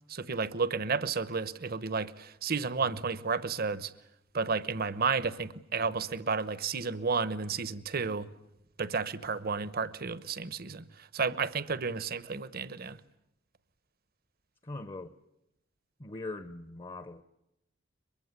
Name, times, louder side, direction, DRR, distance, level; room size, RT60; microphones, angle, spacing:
voice 1, 0.1-3.9 4.3-8.3 8.8-10.9 11.1-13.0, right 5 dB, 50° right, 1.0 m, -32 dB
voice 2, 14.6-15.1 16.0-17.2, left 2 dB, 25° left, 0.9 m, -41 dB
23.0 x 23.0 x 9.8 m
head